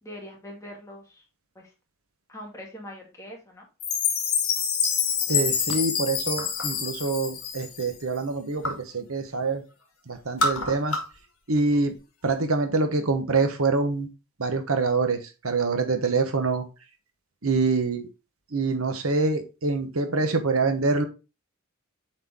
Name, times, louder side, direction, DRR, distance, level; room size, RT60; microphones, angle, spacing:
voice 1, 0.0-1.2 1.6-1.7 2.3-3.7, left 1 dB, 15° left, -2 dB, 2.2 m, -42 dB
Chime, 3.8-8.0, left 7 dB, 80° left, 1.6 m, -27 dB
voice 2, 5.3-9.6 10.1-11.0 11.5-11.9 12.2-14.1 14.4-16.7 17.4-18.1 18.5-21.1, right 3 dB, 75° right, 7 dB, 1.0 m, -25 dB
sound 1, 6.3-6.9 7.3-8.9 9.2-9.8 10.1-11.3 11.5-12.4, equal, 65° left, 2.0 m, -31 dB
7.6 x 4.3 x 3.6 m, 0.29 s
head